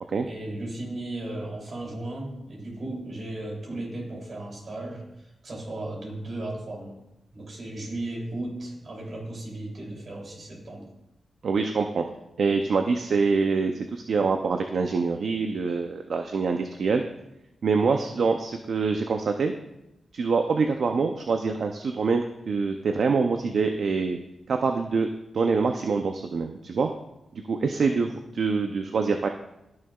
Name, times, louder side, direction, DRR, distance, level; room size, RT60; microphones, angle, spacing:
voice 1, 0.3-7.0 7.3-10.9 17.8-18.0 27.6-28.0, right 1 dB, 50° right, -1 dB, 3.0 m, -36 dB
voice 2, 11.4-12.0 12.4-17.0 17.6-19.5 20.1-24.2 24.5-25.1 25.3-26.9 27.5-29.3, right 4 dB, 65° right, 5 dB, 0.5 m, -25 dB
14.5 x 6.4 x 2.4 m, 0.91 s
wide cardioid pair, 100°, 0 cm